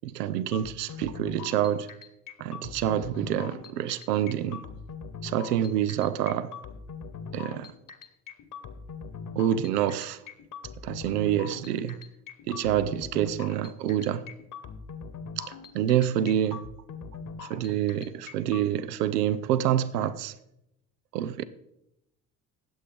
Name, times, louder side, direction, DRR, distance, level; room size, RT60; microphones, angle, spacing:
voice 1, 0.0-1.9 2.4-4.6 5.2-6.5 7.3-7.7 9.4-10.2 10.8-12.0 12.5-14.3 15.4-16.6 17.4-20.3 21.1-21.4, right 11 dB, 85° right, 0.6 m, -27 dB
sound 1, 0.5-18.6, left 5 dB, 45° left, 1.2 m, -42 dB
18.0 x 7.9 x 3.5 m
hypercardioid pair, 55°, 46 cm